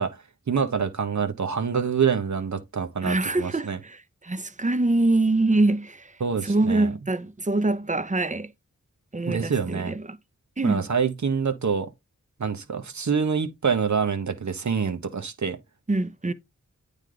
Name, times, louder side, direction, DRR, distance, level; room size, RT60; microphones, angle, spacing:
voice 1, 0.0-3.8 6.2-6.9 9.2-9.9 10.6-11.9 12.4-15.6, right 6 dB, 65° right, 0.9 m, -26 dB
voice 2, 3.0-6.1 6.4-8.5 9.1-10.2 10.6-10.9 15.9-16.3, right 2 dB, 25° right, 0.7 m, -24 dB
9.0 x 3.3 x 3.8 m
cardioid pair, 40°, 31 cm